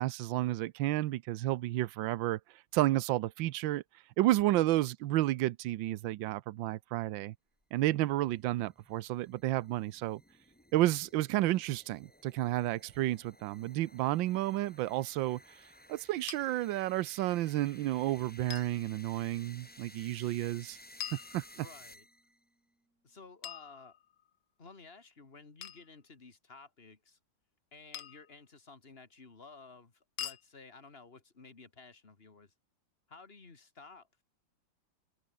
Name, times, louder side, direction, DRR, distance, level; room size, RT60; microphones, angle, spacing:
voice 1, 0.0-2.4 2.7-3.8 4.2-7.3 7.7-10.2 10.7-15.4 15.9-20.8 21.1-21.4, right 15 dB, 75° right, 1.4 m, -31 dB
sound 1, 7.6-22.4, left 1 dB, 5° left, 2.1 m, -57 dB
sound 2, 16.3-16.4 18.5-18.8 21.0-21.9 23.4-24.3 25.6-25.9 27.9-28.3 30.2-30.5, left 10 dB, 65° left, 1.6 m, -43 dB
sound 3, 17.9-23.5, right 2 dB, 45° right, 7.4 m, -69 dB
voice 2, 21.5-22.1 23.0-24.0 24.6-27.2 27.7-32.5 33.1-34.1, left 4 dB, 30° left, 2.3 m, -54 dB
omnidirectional pair, 2.1 m